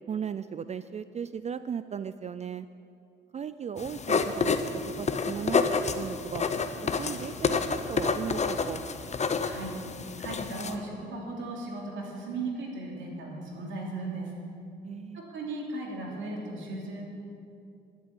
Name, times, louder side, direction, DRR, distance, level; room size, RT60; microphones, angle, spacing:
voice 1, 0.1-2.7 3.3-5.6 6.0-6.5 6.8-8.9 14.8-15.2, right 7 dB, 35° right, 13 dB, 0.4 m, -36 dB
sound 1, 3.8-10.7, left 5 dB, 35° left, 0.9 m, -29 dB
voice 2, 9.4-9.8 10.2-14.3 15.1-17.0, right 2 dB, 75° right, -1 dB, 3.0 m, -36 dB
12.5 x 8.4 x 8.9 m, 2.6 s
cardioid pair, 90°, 20 cm